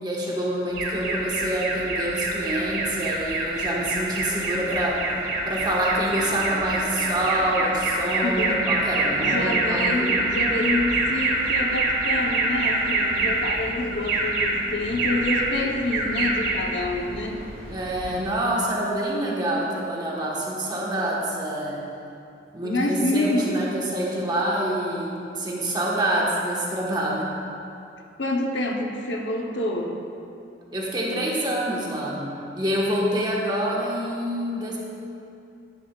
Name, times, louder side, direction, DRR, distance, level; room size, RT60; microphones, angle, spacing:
voice 1, 0.0-5.0 5.5-10.1 17.7-21.8 22.5-27.3 30.7-34.8, right 1 dB, 25° right, -4 dB, 1.3 m, -26 dB
Alarm, 0.7-18.4, right 2 dB, 55° right, 1.5 m, -26 dB
voice 2, 8.2-8.6 9.2-17.5 22.6-23.6 28.2-30.0, left 2 dB, 85° left, 1 dB, 0.9 m, -27 dB
10.0 x 10.0 x 2.4 m, 2.6 s
head